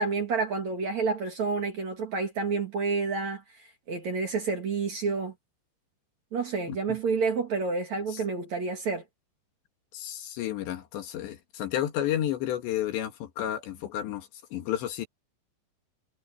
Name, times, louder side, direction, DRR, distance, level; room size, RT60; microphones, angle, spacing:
voice 1, 0.0-5.3 6.3-9.0, right 4 dB, 45° right, 3.0 m, -29 dB
voice 2, 9.9-15.1, left 11 dB, 70° left, 3.9 m, -31 dB
omnidirectional pair, 5.4 m